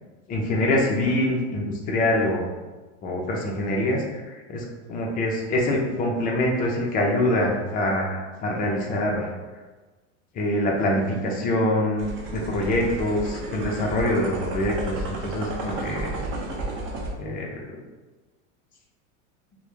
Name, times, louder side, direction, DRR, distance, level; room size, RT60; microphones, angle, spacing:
voice 1, 0.3-2.5 3.0-4.6 4.9-9.3 10.3-16.2 17.2-17.8, left 1 dB, 25° left, -1 dB, 0.4 m, -25 dB
sound 1, 12.0-17.1, right 2 dB, 35° right, 0.5 m, -32 dB
2.3 x 2.0 x 3.0 m, 1.2 s
supercardioid pair, 125°, 37 cm